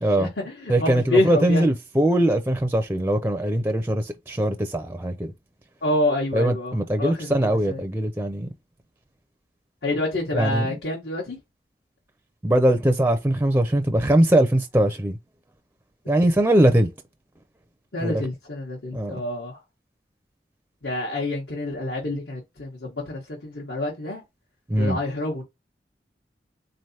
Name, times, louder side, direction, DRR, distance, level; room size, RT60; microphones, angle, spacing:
voice 1, 0.2-1.6 5.8-7.3 7.7-7.8 9.8-11.4 17.9-19.6 20.8-24.2 24.8-25.4, left 1 dB, 80° left, 1.4 m, -27 dB
voice 2, 0.7-5.3 6.3-8.5 10.3-10.7 12.4-15.2 16.1-16.9 18.0-18.2 18.9-19.2 24.7-25.0, right 1 dB, 10° right, 0.4 m, -21 dB
4.0 x 3.2 x 2.7 m
head